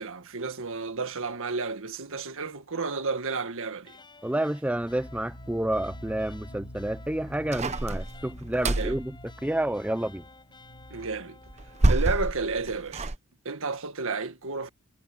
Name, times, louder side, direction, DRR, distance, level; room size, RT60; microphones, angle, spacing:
voice 1, 0.0-3.9 8.6-8.9 10.9-11.4 11.9-13.1 13.5-14.7, right 4 dB, 65° right, 1.8 m, -32 dB
sound 1, 3.8-12.1, left 3 dB, 20° left, 7.6 m, -53 dB
voice 2, 4.2-9.2 9.4-10.2, right 1 dB, 5° right, 0.5 m, -29 dB
sound 2, 4.7-12.4, equal, 70° left, 7.7 m, -47 dB
sound 3, 7.5-9.1 11.5-13.2, right 2 dB, 30° right, 0.9 m, -26 dB
head